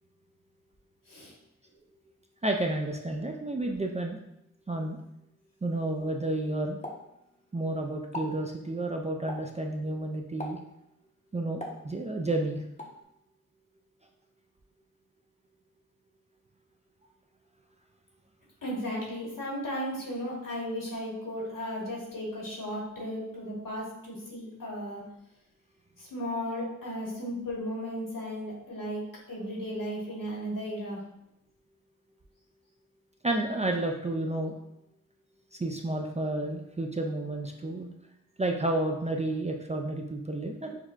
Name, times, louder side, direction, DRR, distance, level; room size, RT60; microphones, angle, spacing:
voice 1, 2.4-4.2 4.7-5.0 5.6-6.8 7.5-10.6 11.3-12.6 33.2-34.6 35.5-37.9 38.4-40.8, right 2 dB, 20° right, 2 dB, 0.3 m, -31 dB
Explosion, 6.8-7.7 8.0-8.4 9.3-9.6 10.4-10.8 11.6-12.3 12.8-13.0, left 1 dB, 20° left, 0.7 m, -40 dB
voice 2, 18.6-25.0 26.0-29.0 29.3-31.0, equal, 70° left, -4 dB, 1.4 m, -35 dB
6.1 x 2.3 x 2.4 m, 0.83 s
wide cardioid pair, 55°, 33 cm